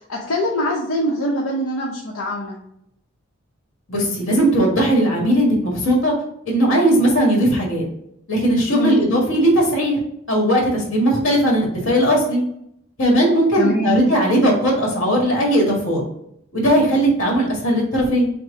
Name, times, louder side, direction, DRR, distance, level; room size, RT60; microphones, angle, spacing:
voice 1, 0.1-2.6 8.7-9.0 13.5-14.0, equal, 90° left, -4 dB, 0.8 m, -23 dB
voice 2, 3.9-6.2 6.5-7.8 8.3-10.0 10.3-12.4 13.0-16.0 16.5-18.3, right 1 dB, 70° left, -1 dB, 1.6 m, -18 dB
6.0 x 2.1 x 3.7 m, 0.76 s
head